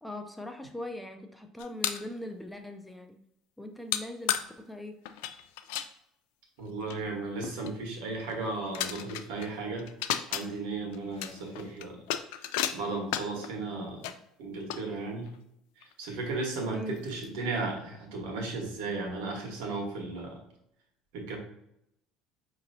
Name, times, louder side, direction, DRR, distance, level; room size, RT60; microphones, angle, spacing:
voice 1, 0.0-3.2 3.6-5.0 16.7-17.0, left 1 dB, 5° left, 5 dB, 0.3 m, -40 dB
sound 1, 1.6-2.1 3.9-4.0 4.3-4.4 5.1-5.9 6.6-6.7 6.9-7.0 7.4-7.7 8.3-8.4 8.7-9.5 9.8-10.4 10.9-13.5 14.0-14.1 14.7-15.4 15.8-15.9 16.5-16.6 16.9-17.3, left 11 dB, 90° left, 0.3 m, -33 dB
voice 2, 6.6-9.9 10.3-12.0 12.4-14.1 14.4-15.3 15.8-20.4 21.1-21.4, right 3 dB, 90° right, 0 dB, 1.2 m, -35 dB
5.1 x 2.9 x 2.6 m, 0.77 s
cardioid pair, 135°, 0 cm